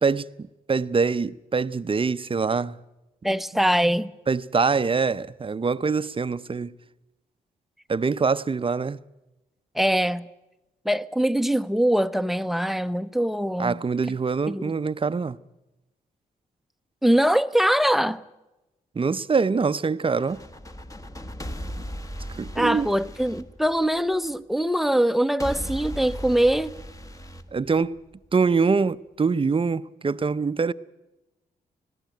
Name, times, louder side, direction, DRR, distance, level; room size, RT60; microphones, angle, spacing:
voice 1, 0.7-2.8 4.3-6.7 7.9-9.0 13.6-15.4 19.0-20.4 21.7-21.8 22.4-22.9 27.5-28.0 28.3-30.7, right 5 dB, 30° right, 0.6 m, -24 dB
voice 2, 3.2-4.1 9.7-10.3 10.8-13.8 14.5-14.7 17.0-18.2 22.5-26.7, equal, ahead, 0.8 m, -22 dB
sound 1, 20.1-24.3 25.4-28.3, equal, 20° left, 1.5 m, -37 dB
20.0 x 15.0 x 9.3 m
cardioid pair, 60°, 17 cm